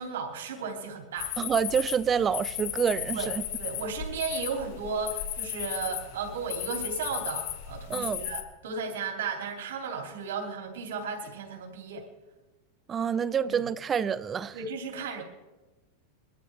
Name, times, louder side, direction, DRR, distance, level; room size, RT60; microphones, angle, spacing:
voice 1, 0.0-1.3 3.1-12.1 13.4-13.6 14.5-15.2, right 5 dB, 85° right, 3.1 m, -35 dB
sound 1, 1.2-8.4, left 11 dB, 55° left, 2.0 m, -35 dB
voice 2, 1.4-3.4 7.9-8.2 12.9-14.6, right 7 dB, 20° right, 0.4 m, -27 dB
23.0 x 13.5 x 3.5 m
supercardioid pair, 145°, 0 cm